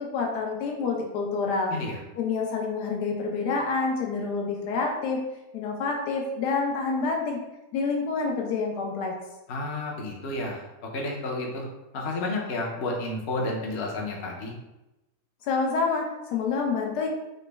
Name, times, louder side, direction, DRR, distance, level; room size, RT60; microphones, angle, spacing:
voice 1, 0.0-1.7 2.2-5.2 5.5-7.4 7.7-9.1 15.4-17.1, left 4 dB, 90° left, 0 dB, 1.2 m, -27 dB
voice 2, 9.5-11.7 11.9-14.5, left 2 dB, 55° left, -1 dB, 0.8 m, -31 dB
3.9 x 2.1 x 3.3 m, 0.98 s
omnidirectional pair, 1.7 m